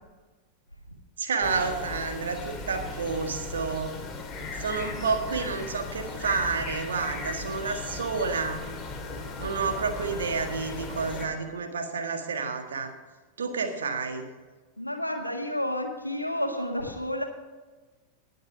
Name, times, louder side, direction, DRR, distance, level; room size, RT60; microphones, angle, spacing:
voice 1, 1.2-4.0 4.6-8.6 9.4-12.9 13.4-14.2, right 4 dB, 65° right, 5 dB, 1.7 m, -30 dB
sound 1, 1.4-11.3, left 3 dB, 20° left, 2.2 m, -37 dB
voice 2, 14.8-17.2, left 1 dB, 90° left, 4 dB, 1.5 m, -30 dB
19.0 x 6.7 x 5.1 m, 1.3 s
figure-of-eight pair, 90°, 0 cm